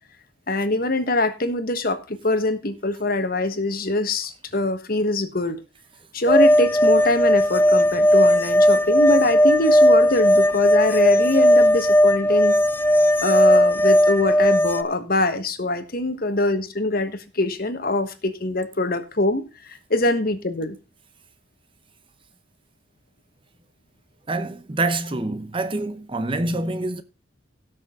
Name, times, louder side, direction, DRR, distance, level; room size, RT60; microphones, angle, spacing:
voice 1, 0.5-5.6 6.1-12.5 13.2-20.8, left 2 dB, 50° left, 1.4 m, -23 dB
sound 1, 6.3-14.8, equal, 10° left, 0.4 m, -16 dB
voice 2, 24.3-27.0, right 2 dB, 25° right, 0.7 m, -26 dB
17.0 x 6.3 x 3.7 m
head